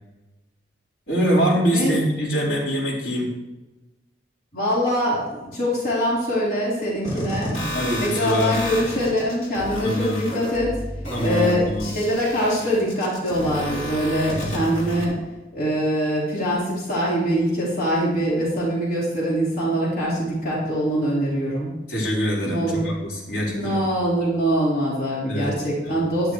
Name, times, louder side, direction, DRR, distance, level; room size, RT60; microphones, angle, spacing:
voice 1, 1.1-3.3 7.7-8.6 9.8-10.2 11.1-11.9 21.9-23.9 25.3-25.5 25.8-26.0 26.2-26.3, equal, 70° left, -5 dB, 4.5 m, -24 dB
voice 2, 4.5-7.6 8.0-10.8 11.2-15.1 15.5-21.7 22.4-22.9 23.4-26.3, equal, 55° left, -7 dB, 4.4 m, -23 dB
sound 1, 7.0-15.0, equal, 40° left, 3.2 m, -31 dB
12.0 x 12.0 x 3.3 m, 1.1 s
head